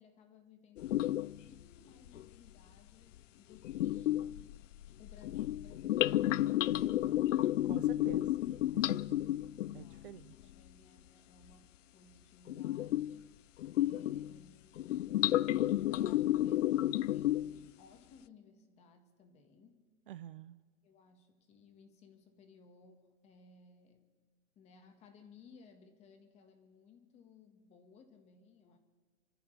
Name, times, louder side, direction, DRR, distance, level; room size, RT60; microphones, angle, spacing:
voice 1, 0.0-4.4 5.0-7.4 9.6-13.4 13.8-19.8 20.8-24.1 24.5-28.8, left 5 dB, 15° left, 5 dB, 1.7 m, -60 dB
sound 1, 0.8-1.4 2.1-2.2 3.6-10.0 12.5-13.2 13.6-14.4 14.8-17.6, left 14 dB, 90° left, 0.5 m, -32 dB
voice 2, 7.6-8.4 8.7-9.3 9.7-10.3 20.1-20.6, right 12 dB, 45° right, 14 dB, 0.5 m, -49 dB
29.5 x 14.0 x 3.4 m, 1.4 s
hypercardioid pair, 160°, 36 cm